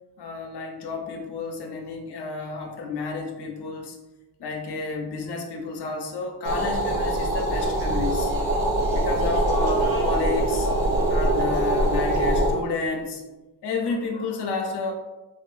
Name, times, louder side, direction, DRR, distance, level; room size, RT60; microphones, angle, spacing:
voice 1, 0.2-4.0 4.4-8.3 8.9-10.7 11.1-13.2 13.6-14.9, left 4 dB, 65° left, 2 dB, 0.7 m, -31 dB
sound 1, 6.4-12.5, right 1 dB, 80° right, 0.7 m, -23 dB
3.5 x 2.5 x 2.4 m, 1.1 s
cardioid pair, 55°, 44 cm